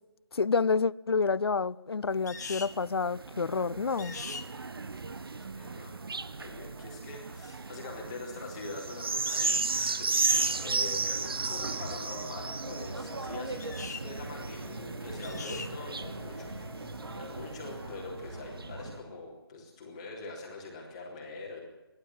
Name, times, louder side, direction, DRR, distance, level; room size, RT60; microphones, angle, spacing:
voice 1, 0.3-4.2, left 5 dB, 90° left, 0.7 m, -28 dB
sound 1, 2.1-18.0 18.6-18.7, right 4 dB, 70° right, 1.1 m, -35 dB
sound 2, 2.3-2.8 4.0-4.5 9.3-9.7 10.1-10.6 13.6-14.1 15.2-15.7, left 4 dB, 45° left, 1.3 m, -40 dB
voice 2, 5.0-5.9 6.4-16.9 17.2-21.6, left 3 dB, 15° left, 3.4 m, -44 dB
sound 3, 10.3-19.0, right 2 dB, 85° right, 3.3 m, -41 dB
29.5 x 12.0 x 7.4 m
hypercardioid pair, 175°, 13 cm